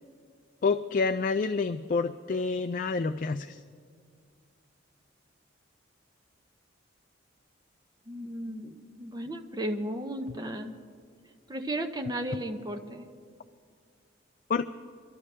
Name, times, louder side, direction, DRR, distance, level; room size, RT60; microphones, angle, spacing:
voice 1, 0.6-3.6 14.5-14.7, left 4 dB, 40° left, 9 dB, 0.3 m, -28 dB
voice 2, 8.1-10.7 11.5-13.0, right 1 dB, 20° right, 5 dB, 0.7 m, -34 dB
25.0 x 12.0 x 3.3 m, 2.1 s
head